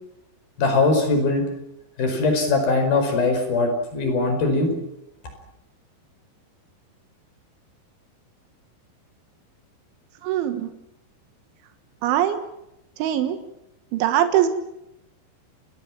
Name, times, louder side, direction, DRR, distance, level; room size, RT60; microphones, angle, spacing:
voice 1, 0.6-1.4 2.0-4.7, left 3 dB, 50° left, 5 dB, 6.5 m, -21 dB
voice 2, 10.2-10.7 12.0-12.4 13.0-13.4 13.9-14.5, right 11 dB, 90° right, 8 dB, 3.8 m, -21 dB
30.0 x 19.5 x 6.2 m, 0.84 s
omnidirectional pair, 5.4 m